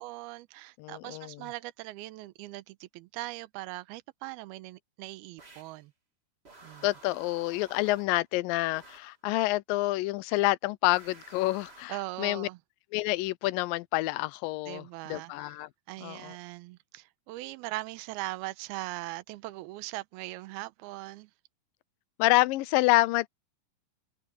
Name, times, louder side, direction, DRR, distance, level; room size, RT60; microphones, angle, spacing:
voice 1, 0.0-5.9 6.6-6.9 11.9-12.6 14.7-15.6 15.9-21.3, right 19 dB, 80° right, 2.6 m, -40 dB
voice 2, 0.8-1.4 6.8-12.5 12.9-15.7 16.0-16.3 22.2-23.3, left 19 dB, 80° left, 2.0 m, -28 dB
sound 1, 5.4-5.8 6.4-8.2 8.7-9.2 10.9-12.0, right 3 dB, 20° right, 1.7 m, -53 dB
omnidirectional pair, 4.6 m